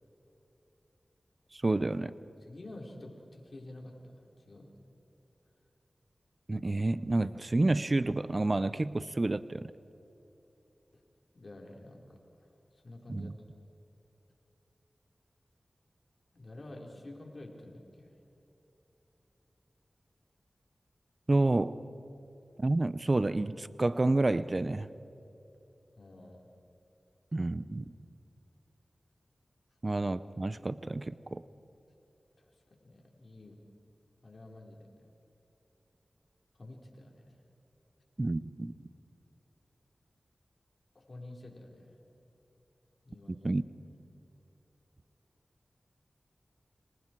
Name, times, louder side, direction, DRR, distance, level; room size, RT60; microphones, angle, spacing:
voice 1, 1.5-2.1 6.5-9.7 13.1-13.3 21.3-21.7 22.6-24.9 27.3-27.8 29.8-31.4 38.2-38.7 43.3-43.6, right 2 dB, 45° right, 16 dB, 0.7 m, -29 dB
voice 2, 2.4-4.7 11.3-13.4 16.3-18.2 26.0-26.4 32.4-32.5 32.8-33.6 34.2-34.9 36.6-37.4 40.9-42.0 43.0-43.5, left 1 dB, 65° left, 0 dB, 4.3 m, -49 dB
29.5 x 26.0 x 4.6 m, 3.0 s
cardioid pair, 40°, 0 cm